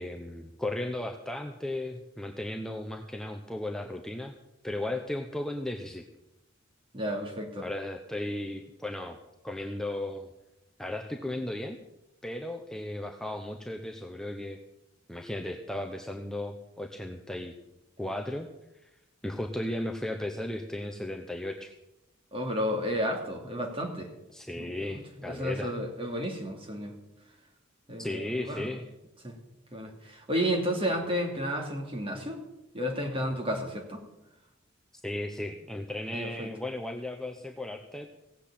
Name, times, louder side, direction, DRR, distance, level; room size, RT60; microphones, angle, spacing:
voice 1, 0.0-4.3 4.6-6.0 7.6-9.2 9.4-10.3 10.8-11.8 12.2-14.6 15.1-17.5 18.0-18.5 18.8-18.9 19.2-21.7 24.3-25.7 28.0-28.8 35.0-38.1, left 1 dB, 5° left, 3 dB, 0.9 m, -35 dB
voice 2, 6.9-7.7 22.3-24.1 24.6-25.0 25.2-26.9 27.9-28.7 29.2-29.3 29.7-32.4 32.7-34.0 36.1-36.5, equal, 30° right, 2 dB, 2.9 m, -32 dB
17.0 x 8.0 x 8.7 m, 0.92 s
head